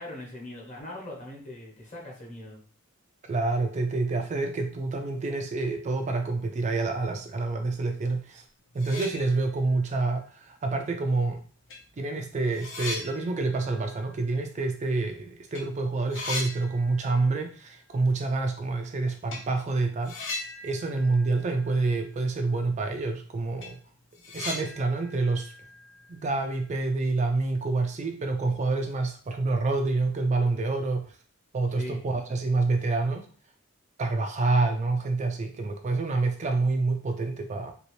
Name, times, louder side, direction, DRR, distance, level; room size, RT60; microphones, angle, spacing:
voice 1, 0.0-2.6 31.8-32.0, left 1 dB, 35° left, -2 dB, 1.1 m, -40 dB
voice 2, 3.3-8.4 8.7-11.4 12.0-23.8 24.3-25.5 26.1-31.2 31.5-33.3 34.0-37.7, right 3 dB, 35° right, 5 dB, 0.3 m, -27 dB
sound 1, 8.4-8.5 8.7-9.8 10.2-10.3 11.2-11.3 11.7-15.2 15.4-15.6 15.9-17.5 17.7-17.8 19.3-19.5 20.0-22.2 22.4-22.5 23.0-23.1 23.4-26.6, left 3 dB, 65° left, 0.8 m, -39 dB
2.9 x 2.8 x 3.1 m, 0.42 s
head